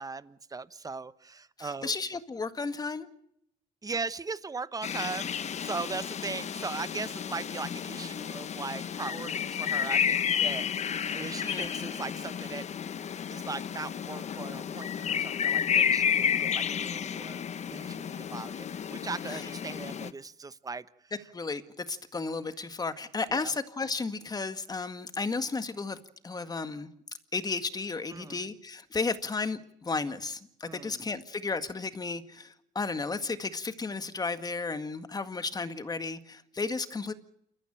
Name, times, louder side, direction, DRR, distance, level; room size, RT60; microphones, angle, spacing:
voice 1, 0.0-1.9 3.8-12.7 13.3-21.1 23.3-23.5 28.1-28.4 30.6-31.0, right 4 dB, 20° right, 16 dB, 1.0 m, -39 dB
voice 2, 1.6-3.1 11.4-11.8 19.3-19.5 21.3-26.9 27.3-37.1, left 4 dB, 25° left, 11 dB, 1.9 m, -33 dB
sound 1, 4.8-20.1, left 8 dB, 40° left, 1.1 m, -31 dB
29.0 x 14.0 x 9.0 m, 0.74 s
cardioid pair, 110°, 17 cm